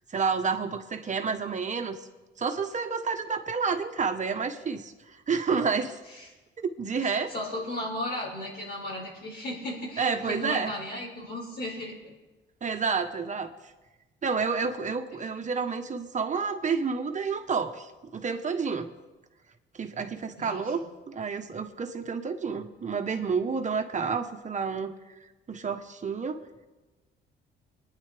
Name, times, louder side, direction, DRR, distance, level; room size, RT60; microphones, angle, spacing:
voice 1, 0.1-2.1 2.4-6.0 6.6-7.3 10.0-10.7 12.6-13.5 14.2-18.9 19.8-24.9 25.5-26.4, right 5 dB, 40° right, 7 dB, 1.1 m, -30 dB
voice 2, 7.0-12.1 20.3-20.7, left 1 dB, 55° left, -5 dB, 5.4 m, -35 dB
22.0 x 10.0 x 3.4 m, 1.2 s
cardioid pair, 90°, 20 cm